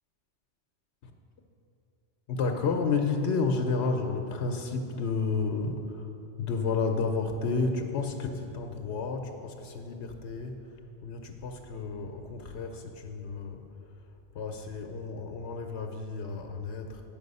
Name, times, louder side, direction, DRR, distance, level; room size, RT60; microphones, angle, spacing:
voice 1, 2.3-6.1 6.4-10.6 11.0-13.6 14.3-17.0, left 4 dB, 75° left, 4 dB, 0.9 m, -31 dB
8.9 x 7.2 x 5.3 m, 2.9 s
omnidirectional pair, 1.2 m